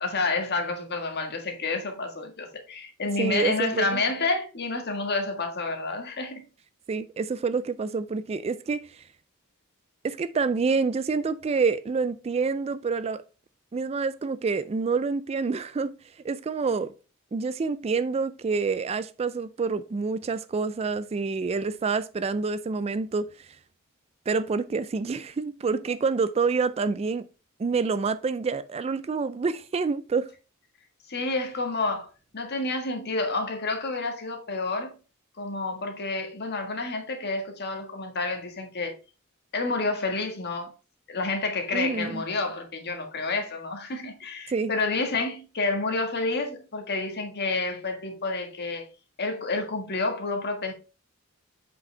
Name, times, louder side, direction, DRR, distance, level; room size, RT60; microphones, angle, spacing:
voice 1, 0.0-6.4 31.1-32.1 32.3-34.9 35.4-38.9 39.5-40.7 41.1-48.9 49.2-50.7, left 3 dB, 50° left, 1.6 m, -29 dB
voice 2, 3.2-4.0 6.9-9.0 10.0-13.2 13.7-15.9 16.2-16.9 17.3-23.3 24.3-27.2 27.6-30.3 41.7-42.2 44.5-44.7, right 4 dB, 30° right, 0.3 m, -27 dB
7.7 x 5.0 x 3.3 m
head